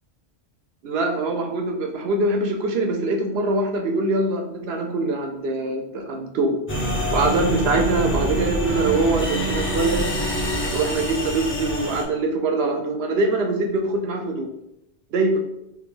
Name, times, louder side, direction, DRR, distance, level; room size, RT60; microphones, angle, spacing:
voice 1, 0.8-6.6 7.1-10.1 10.7-14.5 15.1-15.4, right 2 dB, 70° right, 3 dB, 0.8 m, -23 dB
sound 1, 6.7-12.0, equal, 15° left, 0.5 m, -25 dB
3.4 x 2.8 x 3.4 m, 0.81 s
omnidirectional pair, 1.2 m